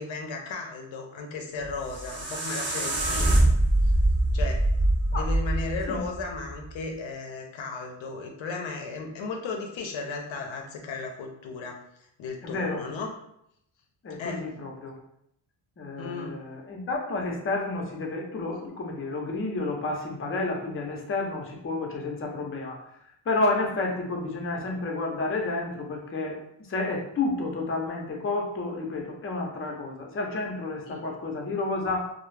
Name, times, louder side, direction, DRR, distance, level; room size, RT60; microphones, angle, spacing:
voice 1, 0.0-3.4 3.8-3.9 4.3-4.6 5.1-11.8 12.2-13.1 14.2-14.5 16.0-16.4 30.9-31.0, left 4 dB, 65° left, 2 dB, 0.6 m, -35 dB
sound 1, 1.6-6.7, right 1 dB, 25° right, 0.6 m, -24 dB
voice 2, 12.4-12.8 14.0-14.9 15.8-22.8 23.3-26.4 26.7-32.1, left 3 dB, 25° left, 0 dB, 0.6 m, -30 dB
2.3 x 2.0 x 3.1 m, 0.76 s
cardioid pair, 85°, 49 cm